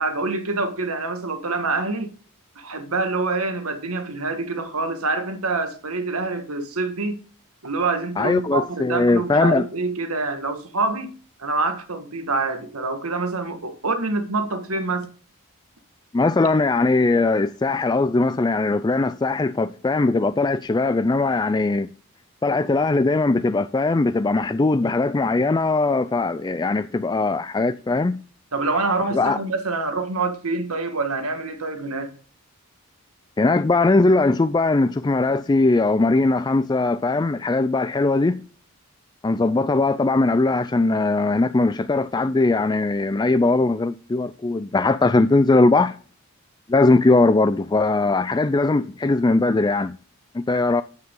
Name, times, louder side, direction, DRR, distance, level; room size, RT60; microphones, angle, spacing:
voice 1, 0.0-2.1 2.6-7.2 7.6-11.1 11.4-15.1 28.5-32.1, right 3 dB, 75° right, 1.8 m, -26 dB
voice 2, 8.2-9.7 16.1-21.9 22.4-28.2 29.1-29.4 33.4-38.4 39.2-46.0 46.7-50.0 50.3-50.8, left 3 dB, 20° left, 0.3 m, -20 dB
9.7 x 9.1 x 3.8 m
head